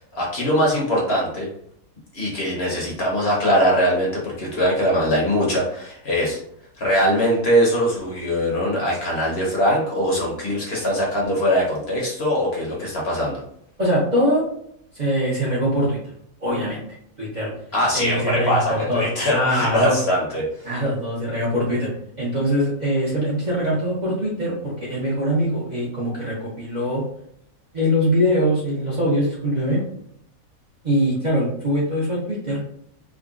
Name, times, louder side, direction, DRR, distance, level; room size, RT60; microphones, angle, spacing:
voice 1, 0.0-1.5 2.1-6.4 6.8-13.4 17.7-20.5, equal, 55° left, -3 dB, 1.0 m, -21 dB
voice 2, 13.8-14.4 14.9-16.0 16.4-16.8 17.2-17.5 17.9-20.0 20.6-21.9 22.2-27.0 27.7-29.8 30.8-32.6, equal, 40° right, -7 dB, 0.8 m, -22 dB
3.7 x 2.2 x 2.4 m, 0.68 s
omnidirectional pair, 1.5 m